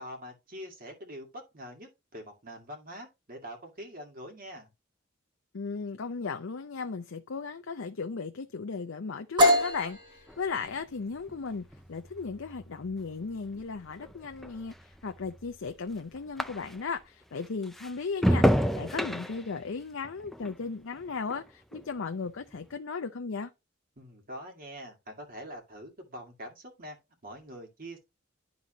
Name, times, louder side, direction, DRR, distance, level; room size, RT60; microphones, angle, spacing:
voice 1, 0.0-4.7 24.0-27.0 27.2-28.0, equal, 45° right, 2.1 m, -44 dB
voice 2, 5.5-23.5, left 4 dB, 75° left, 0.6 m, -36 dB
sound 1, 9.4-17.0, left 1 dB, 25° right, 1.6 m, -30 dB
sound 2, 10.3-17.0 17.4-21.9 22.2-22.7, equal, ahead, 0.4 m, -32 dB
11.5 x 4.0 x 3.0 m
head